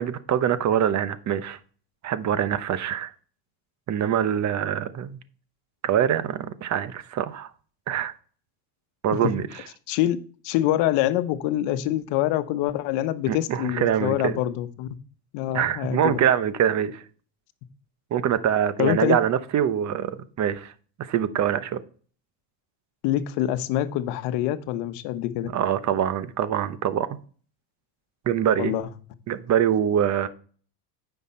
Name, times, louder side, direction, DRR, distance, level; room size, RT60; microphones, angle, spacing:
voice 1, 0.0-1.6 2.0-3.1 3.9-5.2 5.8-7.5 7.9-8.1 9.0-9.6 13.3-14.4 15.5-17.0 18.1-20.7 21.0-21.8 25.5-27.2 28.3-28.7 29.3-30.3, right 9 dB, 40° right, 0.9 m, -24 dB
voice 2, 9.9-10.2 10.4-14.9 15.3-16.1 18.8-19.2 23.0-25.5 28.6-28.9, left 13 dB, 65° left, 1.0 m, -25 dB
9.6 x 5.8 x 4.3 m
supercardioid pair, 115°, 44 cm